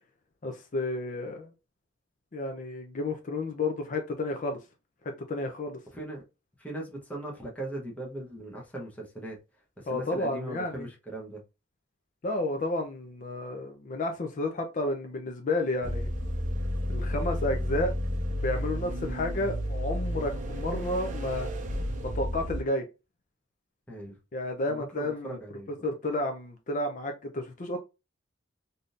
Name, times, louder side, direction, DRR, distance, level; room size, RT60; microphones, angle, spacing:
voice 1, 0.4-1.5 2.3-4.6 5.3-5.8 9.9-10.9 12.2-16.1 16.9-17.9 18.3-21.5 22.0-22.8 24.3-25.4 25.8-27.8, left 2 dB, 40° left, 0.5 m, -31 dB
voice 2, 5.9-6.2 6.6-9.4 9.8-11.4 23.9-24.2 24.7-25.8, right 1 dB, 5° left, 0.9 m, -39 dB
sound 1, 15.8-22.6, equal, 40° right, 0.6 m, -32 dB
3.5 x 2.7 x 2.4 m
head